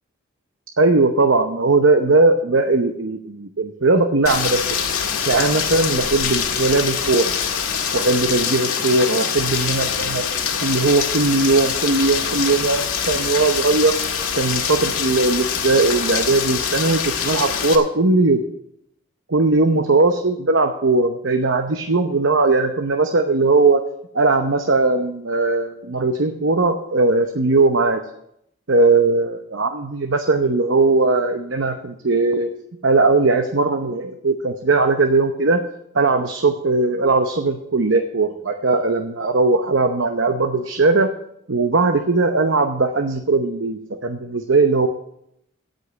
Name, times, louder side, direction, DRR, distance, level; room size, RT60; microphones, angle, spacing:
voice 1, 0.8-4.6 5.3-7.3 7.9-10.2 10.6-13.9 14.4-18.4 19.3-23.8 24.1-28.0 28.7-32.5 32.8-35.6 35.9-41.1 41.5-44.9, right 3 dB, 60° right, 6 dB, 0.8 m, -19 dB
Rain, 4.3-17.8, left 7 dB, 85° left, 1.8 m, -24 dB
16.0 x 5.5 x 7.7 m, 0.76 s
head